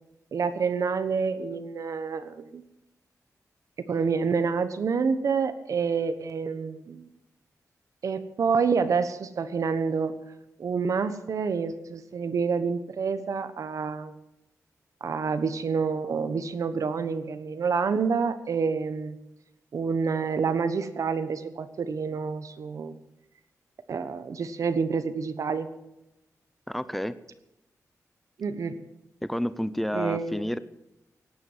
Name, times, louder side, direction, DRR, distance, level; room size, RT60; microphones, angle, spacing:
voice 1, 0.3-2.6 3.8-7.1 8.0-10.1 10.6-14.1 15.0-19.2 19.7-23.0 23.9-25.7 28.4-28.8 29.9-30.4, right 5 dB, 65° right, 11 dB, 1.2 m, -28 dB
voice 2, 26.7-27.2 29.2-30.6, equal, 5° left, 14 dB, 0.7 m, -30 dB
17.5 x 9.5 x 7.4 m, 0.92 s
wide cardioid pair, 165°, 6 cm